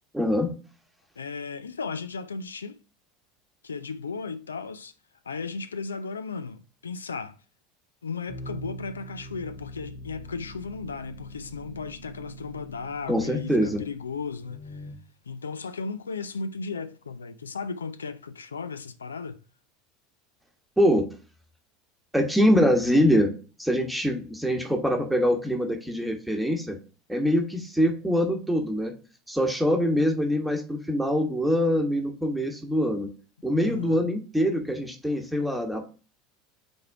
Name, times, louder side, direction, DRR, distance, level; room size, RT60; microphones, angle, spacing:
voice 1, 0.1-0.5 13.1-13.8 20.8-21.1 22.1-23.3 23.6-26.8 27.1-28.9 29.3-33.1 33.4-35.8, equal, ahead, 1.3 m, -24 dB
voice 2, 1.2-2.8 3.6-4.9 5.3-7.4 8.0-14.8 15.3-19.4 33.6-34.0, left 4 dB, 80° left, 0.4 m, -35 dB
sound 1, 8.3-14.9, equal, 45° left, 1.5 m, -43 dB
4.7 x 4.4 x 4.7 m
figure-of-eight pair, 75°, 0 cm